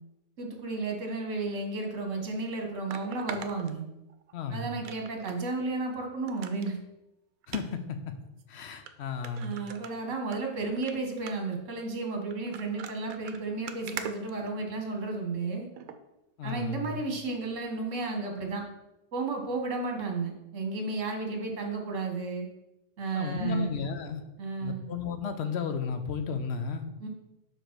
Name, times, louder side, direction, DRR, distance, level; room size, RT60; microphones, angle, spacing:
voice 1, 0.4-3.8 4.5-6.8 9.4-15.7 16.4-18.6 19.1-22.5 23.0-23.7 24.4-24.9 27.0-27.1, right 3 dB, 60° right, 2 dB, 1.5 m, -33 dB
sound 1, 1.8-1.9 2.9-4.3 4.8-5.4 5.8-5.9 6.3-6.7 7.4-7.6 8.4-8.5 8.9-9.0 9.2-10.4 10.7-10.9 11.3-11.6 12.3-15.0 15.8-16.0 16.5-16.6, right 8 dB, 80° right, 1.0 m, -42 dB
voice 2, 4.3-4.7 7.5-8.1 8.5-9.6 16.4-16.9 23.1-24.2 24.6-26.9, left 5 dB, 60° left, 8 dB, 0.8 m, -33 dB
5.0 x 4.4 x 5.9 m, 0.93 s
omnidirectional pair, 1.5 m